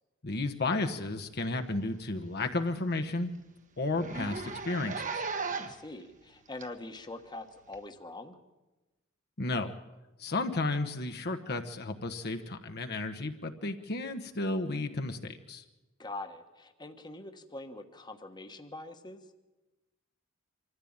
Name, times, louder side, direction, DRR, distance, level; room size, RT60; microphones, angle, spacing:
voice 1, 0.2-3.3 3.8-5.2 9.4-9.7 10.2-15.6, left 2 dB, 50° left, 6 dB, 1.2 m, -33 dB
Zipper (clothing), 1.3-1.5 1.8-1.9 2.3-2.4 2.7-2.8 3.1-3.2 3.9-5.9 6.6-6.7 7.7-7.8, right 4 dB, 40° right, 1.4 m, -36 dB
voice 2, 5.5-8.4 16.0-19.2, left 2 dB, 20° left, 6 dB, 1.3 m, -44 dB
25.0 x 14.5 x 8.8 m, 1.1 s
head